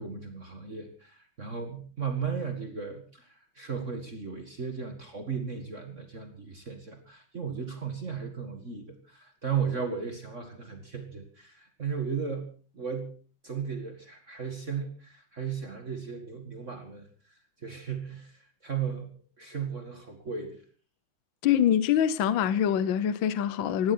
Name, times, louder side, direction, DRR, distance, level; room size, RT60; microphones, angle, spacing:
voice 1, 0.0-12.5 12.7-13.1 13.4-17.3 17.6-20.6, right 6 dB, 35° right, 2.2 m, -35 dB
voice 2, 21.4-23.9, left 9 dB, 70° left, 1.6 m, -24 dB
19.0 x 16.5 x 4.4 m
omnidirectional pair, 2.3 m